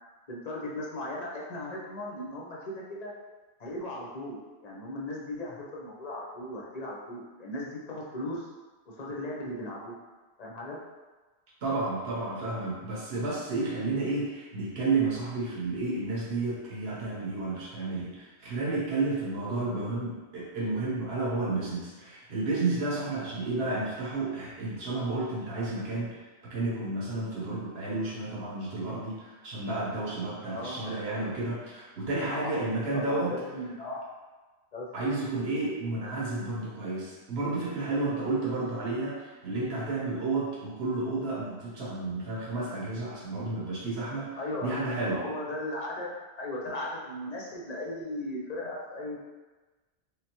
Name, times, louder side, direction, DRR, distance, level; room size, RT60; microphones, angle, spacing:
voice 1, 0.3-3.1 3.6-8.5 8.9-10.0 10.4-10.8 30.5-30.9 32.3-32.6 32.9-34.1 34.7-34.9 44.4-44.7 45.1-49.2, left 1 dB, 40° left, -4 dB, 0.8 m, -37 dB
voice 2, 11.6-33.3 34.9-44.3 44.6-45.2, right 2 dB, 65° right, -5 dB, 1.3 m, -31 dB
3.5 x 3.4 x 3.0 m, 1.2 s
omnidirectional pair, 1.1 m